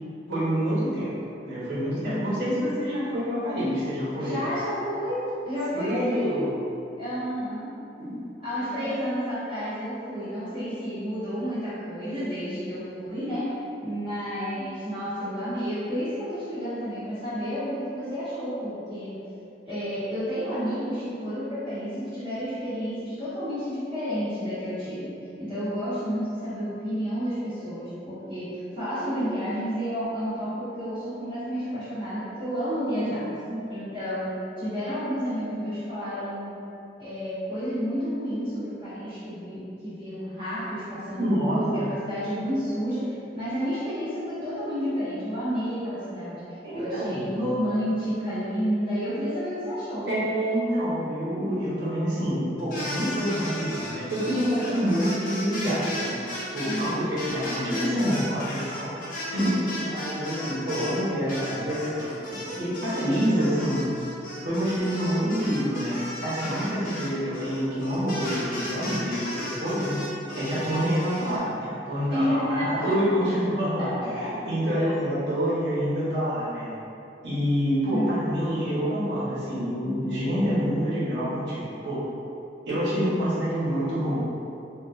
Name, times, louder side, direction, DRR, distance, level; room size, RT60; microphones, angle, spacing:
voice 1, 0.3-4.4 5.7-6.5 8.0-8.2 8.6-8.9 14.5-14.6 33.4-33.6 41.1-41.9 46.6-47.3 50.1-56.2 56.5-58.9 59.3-62.1 62.5-63.9 64.4-70.0 70.3-76.7 77.2-82.0 82.7-84.2, equal, 80° right, -10 dB, 1.0 m, -27 dB
voice 2, 2.0-2.7 4.2-6.5 7.0-7.7 8.4-13.5 13.8-19.2 19.7-25.1 25.4-33.3 33.7-36.5 37.0-46.4 46.7-50.1 56.6-57.2 72.1-73.0 73.8-74.4 74.7-74.9 77.9-78.4, equal, 30° right, -15 dB, 0.9 m, -30 dB
sound 1, 52.6-61.0 61.3-71.4, left 1 dB, 50° left, 0.6 m, -35 dB
3.5 x 2.3 x 2.4 m, 2.7 s
head